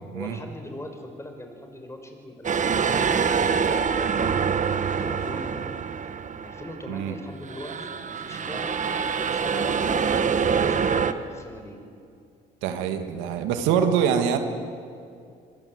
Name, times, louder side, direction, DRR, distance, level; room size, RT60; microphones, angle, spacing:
voice 1, 0.1-3.2 3.6-4.3 4.9-5.7 6.4-8.9 9.2-11.8 13.6-14.3, left 1 dB, 15° left, 5 dB, 5.4 m, -41 dB
sound 1, 2.4-7.0 7.4-11.1, right 6 dB, 40° right, 1.4 m, -25 dB
voice 2, 12.6-14.4, right 8 dB, 85° right, 6 dB, 1.9 m, -24 dB
26.5 x 22.0 x 8.0 m, 2.4 s
supercardioid pair, 70°, 19 cm